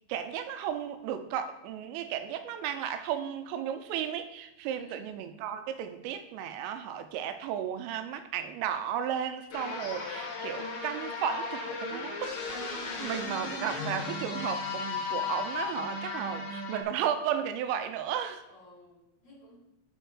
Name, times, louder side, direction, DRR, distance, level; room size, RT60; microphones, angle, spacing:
voice 1, 0.1-12.3 12.7-18.4, right 9 dB, 85° right, 9 dB, 3.2 m, -34 dB
voice 2, 4.7-5.1 18.5-19.6, right 1 dB, 30° left, -8 dB, 4.0 m, -54 dB
sound 1, 9.5-16.8, left 4 dB, 75° left, 3.4 m, -35 dB
10.0 x 5.3 x 4.7 m, 0.92 s
omnidirectional pair, 5.8 m